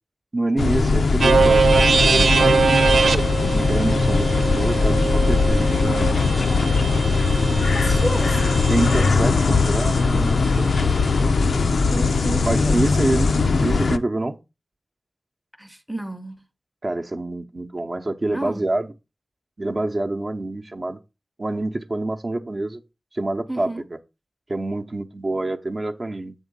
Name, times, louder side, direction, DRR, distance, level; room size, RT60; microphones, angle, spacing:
voice 1, 0.3-2.8 3.5-6.7 8.7-10.9 12.4-13.3 13.6-14.4 16.8-18.9 19.6-21.0 21.4-22.8 23.1-23.7 24.5-26.3, right 2 dB, 35° right, 0.7 m, -26 dB
sound 1, 0.6-14.0, left 4 dB, 80° left, 0.4 m, -20 dB
sound 2, 1.2-9.1, right 5 dB, 85° right, 0.3 m, -22 dB
voice 2, 7.2-8.6 11.9-12.9 15.6-16.4 18.2-18.6 23.5-23.9, right 1 dB, ahead, 0.6 m, -31 dB
8.1 x 3.6 x 5.1 m
wide cardioid pair, 90°, 0 cm